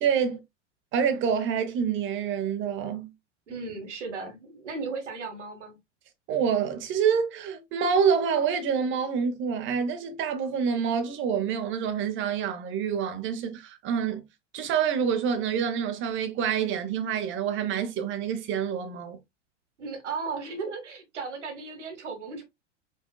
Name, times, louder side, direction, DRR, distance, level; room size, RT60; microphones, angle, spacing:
voice 1, 0.0-0.4 0.9-3.1 6.3-14.2 14.5-19.2, right 7 dB, 35° right, 0.9 m, -27 dB
voice 2, 3.5-5.8 19.8-22.4, right 4 dB, 70° right, 1.5 m, -36 dB
5.1 x 2.7 x 2.3 m
figure-of-eight pair, 90°, 36 cm